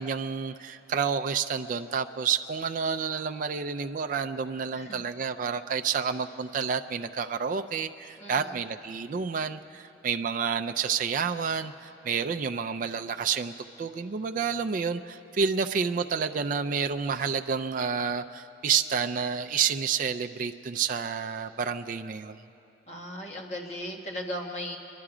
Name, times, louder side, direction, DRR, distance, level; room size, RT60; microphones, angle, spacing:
voice 1, 0.0-13.5 13.8-22.4, right 6 dB, 45° right, 6 dB, 0.3 m, -29 dB
voice 2, 8.2-8.6 22.9-24.8, left 1 dB, 40° left, 1 dB, 1.4 m, -37 dB
24.0 x 11.5 x 4.9 m, 2.9 s
head